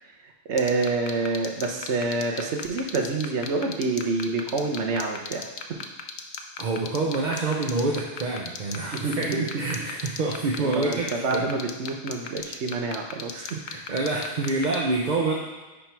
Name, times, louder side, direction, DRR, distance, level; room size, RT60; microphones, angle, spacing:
voice 1, 0.2-5.8 8.9-9.5 10.6-13.6, right 3 dB, 85° right, 2 dB, 1.2 m, -28 dB
sound 1, 0.6-14.8, left 7 dB, 70° left, 0.9 m, -34 dB
voice 2, 6.6-11.5 13.3-15.3, right 3 dB, 45° right, -2 dB, 0.9 m, -27 dB
9.9 x 3.5 x 4.6 m, 1.2 s
omnidirectional pair, 1.1 m